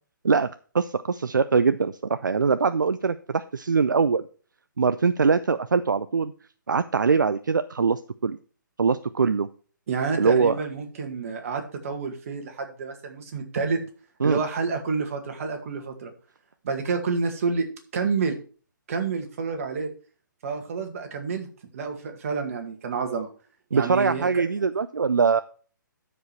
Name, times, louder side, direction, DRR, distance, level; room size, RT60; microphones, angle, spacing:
voice 1, 0.7-4.2 4.8-6.3 6.7-8.4 8.8-9.5 10.2-10.6 14.2-14.4 23.7-25.4, right 5 dB, 70° right, 12 dB, 0.5 m, -22 dB
voice 2, 9.9-13.8 14.2-16.1 16.6-17.7 17.9-18.4 18.9-19.9 20.4-21.5 21.7-23.3 23.7-24.4, right 5 dB, 45° right, 5 dB, 2.0 m, -29 dB
12.5 x 5.1 x 4.5 m, 0.40 s
figure-of-eight pair, 130°, 11 cm